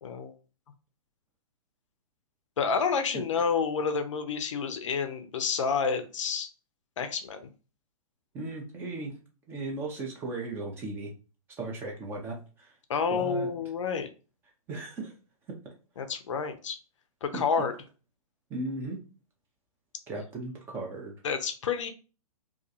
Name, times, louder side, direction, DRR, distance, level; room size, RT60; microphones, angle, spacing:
voice 1, 0.0-0.3 2.6-6.5 7.0-7.5 12.9-14.1 16.0-16.8 17.2-17.7 21.2-21.9, left 5 dB, 50° left, 8 dB, 0.4 m, -29 dB
voice 2, 8.3-9.2 9.5-11.1 11.6-12.7 13.1-13.5 14.7-15.1 17.3-17.4 18.5-19.0 20.1-21.1, right 2 dB, 10° right, -1 dB, 0.4 m, -36 dB
2.3 x 2.3 x 2.6 m, 0.35 s
figure-of-eight pair, 115°, 20 cm